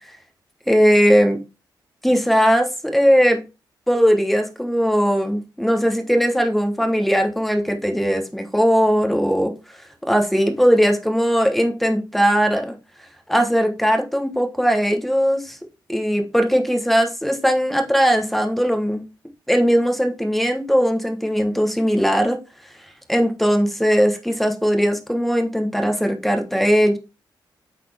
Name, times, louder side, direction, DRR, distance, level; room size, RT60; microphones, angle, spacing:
voice 1, 0.7-1.4 2.0-3.4 3.9-9.5 10.0-12.7 13.3-15.6 15.9-19.0 19.5-22.4 23.1-27.0, equal, ahead, 5 dB, 1.2 m, -19 dB
8.3 x 4.2 x 3.5 m, 0.29 s
cardioid pair, 105°, 8 cm